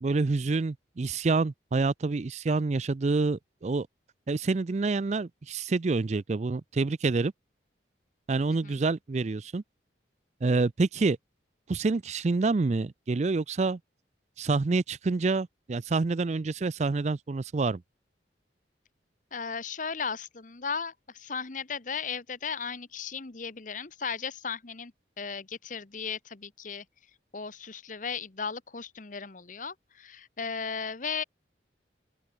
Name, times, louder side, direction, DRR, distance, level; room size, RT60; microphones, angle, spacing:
voice 1, 0.0-3.9 4.3-7.3 8.3-9.6 10.4-11.2 11.7-13.8 14.4-17.8, right 3 dB, 40° right, 0.4 m, -27 dB
voice 2, 19.3-26.8 27.3-31.2, left 6 dB, 45° left, 1.1 m, -36 dB
open air
head